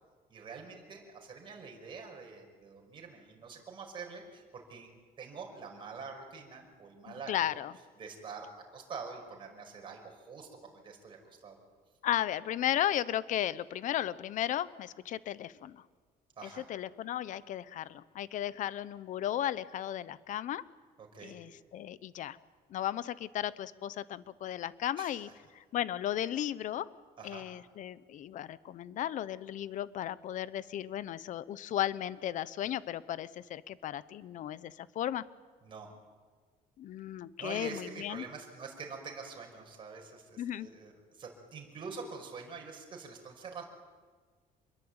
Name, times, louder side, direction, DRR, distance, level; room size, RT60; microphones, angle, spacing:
voice 1, 0.3-4.9 5.2-7.4 8.0-11.6 16.4-16.7 21.0-21.4 25.0-25.2 27.2-27.5 35.6-35.9 37.4-43.6, right 5 dB, 30° right, 1 dB, 5.6 m, -46 dB
voice 2, 7.1-7.7 12.0-15.8 16.4-20.6 21.2-22.4 22.7-26.9 27.2-35.2 36.8-38.2 40.4-40.7, left 11 dB, 50° left, 17 dB, 0.9 m, -35 dB
27.0 x 22.0 x 8.9 m, 1.4 s
cardioid pair, 160°, 16 cm